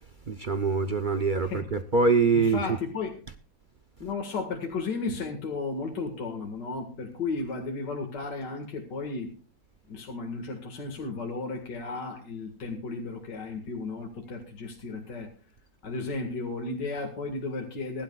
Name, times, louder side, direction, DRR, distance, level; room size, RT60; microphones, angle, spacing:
voice 1, 0.3-2.6, right 4 dB, 70° right, 0.4 m, -24 dB
voice 2, 2.3-3.2 4.0-9.3 9.9-15.3 15.8-18.0, left 3 dB, 65° left, 2.5 m, -34 dB
21.0 x 12.0 x 2.4 m
omnidirectional pair, 2.0 m